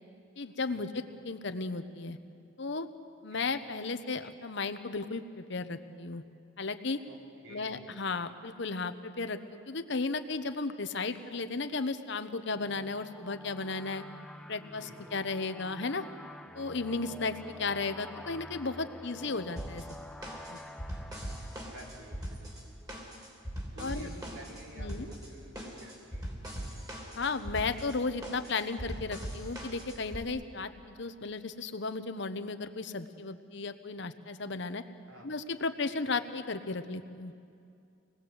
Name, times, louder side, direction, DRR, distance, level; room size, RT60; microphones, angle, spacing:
voice 1, 0.4-2.2 2.6-2.9 3.2-6.2 6.6-7.0 7.5-9.4 9.7-14.0 14.5-16.0 16.5-19.8 20.5-20.6 23.8-24.1 24.8-25.1 27.2-34.8 35.2-37.3, left 3 dB, 60° left, 9 dB, 1.0 m, -34 dB
voice 2, 7.4-8.0 14.7-15.0 21.7-23.1 23.7-26.3 35.1-35.3 36.0-36.2, right 1 dB, 85° right, -1 dB, 4.5 m, -51 dB
sound 1, 12.5-22.9, left 1 dB, 5° left, 0.5 m, -49 dB
sound 2, 19.6-30.2, equal, 20° right, 3.1 m, -41 dB
26.0 x 20.0 x 8.0 m, 2.4 s
head